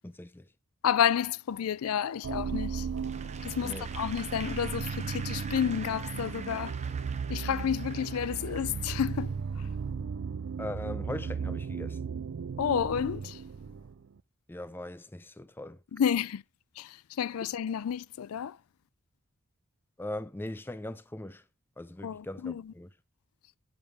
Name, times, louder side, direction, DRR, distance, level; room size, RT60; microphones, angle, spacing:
voice 1, 0.0-0.5 3.6-3.9 10.6-12.1 14.5-15.8 20.0-21.4 21.8-22.9, left 1 dB, 10° left, 0.5 m, -40 dB
voice 2, 0.8-2.9 3.4-6.8 7.3-9.7 12.6-13.4 15.9-16.4 16.8-18.6 22.0-22.7, left 8 dB, 75° left, 0.4 m, -30 dB
sound 1, 2.2-14.1, right 6 dB, 55° right, 0.4 m, -36 dB
Applause / Crowd, 3.0-9.4, right 6 dB, 30° right, 0.9 m, -46 dB
10.5 x 7.3 x 3.5 m
head